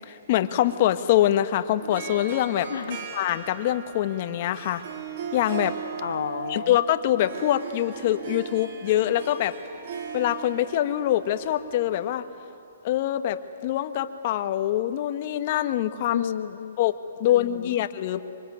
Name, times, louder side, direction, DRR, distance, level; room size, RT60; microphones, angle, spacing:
voice 1, 0.0-2.7 3.1-4.8 5.3-5.8 6.5-9.6 10.1-12.2 12.8-16.2 16.8-16.9 17.2-18.2, left 12 dB, 45° left, 10 dB, 1.4 m, -24 dB
Harp, 1.8-12.1, right 6 dB, 55° right, 2.7 m, -38 dB
voice 2, 2.7-3.1 6.0-6.8 16.1-16.8 17.2-17.8, left 8 dB, 65° left, 10 dB, 0.6 m, -32 dB
25.0 x 25.0 x 9.5 m, 2.9 s
hypercardioid pair, 145°, 0 cm